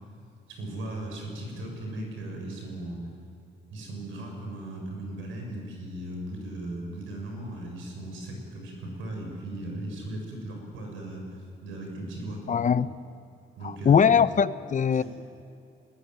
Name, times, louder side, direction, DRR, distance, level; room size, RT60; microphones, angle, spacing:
voice 1, 0.5-3.0 3.7-12.6 13.6-14.1 14.9-15.0, right 1 dB, 85° right, 2 dB, 7.1 m, -37 dB
voice 2, 12.5-13.0 13.6-15.0, left 7 dB, 40° left, 15 dB, 0.7 m, -21 dB
23.0 x 21.0 x 9.5 m, 2.5 s
cardioid pair, 90°, 20 cm